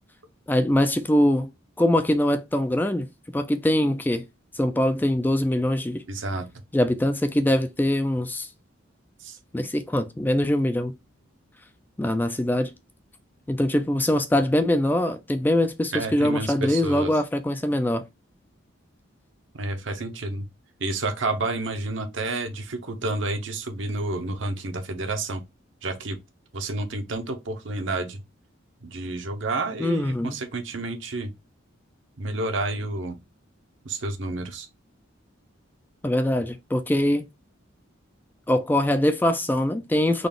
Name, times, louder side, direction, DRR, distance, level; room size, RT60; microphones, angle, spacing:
voice 1, 0.5-1.5 1.8-3.1 3.3-4.3 4.5-6.0 6.7-8.5 9.5-11.0 12.0-12.7 13.5-18.0 29.8-30.4 36.0-37.3 38.5-40.3, left 1 dB, 10° left, 0.3 m, -23 dB
voice 2, 6.1-6.5 9.2-9.4 15.9-17.1 19.5-20.5 20.8-25.4 25.8-26.2 26.5-28.2 28.8-31.3 32.2-33.2 33.8-34.7, right 2 dB, 65° right, 0.8 m, -30 dB
3.9 x 2.4 x 3.4 m
head